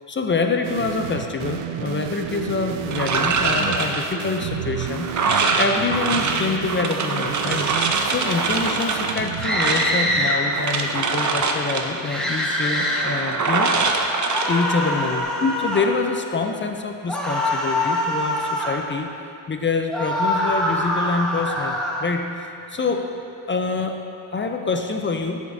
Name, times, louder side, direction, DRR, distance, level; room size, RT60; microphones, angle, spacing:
voice 1, 0.1-5.1 5.5-7.7 8.0-13.7 14.5-19.1 19.5-24.0 24.3-25.4, left 4 dB, 25° left, 4 dB, 0.4 m, -26 dB
sound 1, 0.6-12.2, right 10 dB, 80° right, 0.5 m, -32 dB
sound 2, 2.9-15.2, right 4 dB, 40° right, 0.7 m, -24 dB
sound 3, 9.4-10.4 12.0-13.0 14.3-15.9 17.1-18.8 19.9-22.0, left 1 dB, ahead, 1.2 m, -24 dB
13.0 x 7.3 x 2.7 m, 2.5 s
cardioid pair, 115°, 47 cm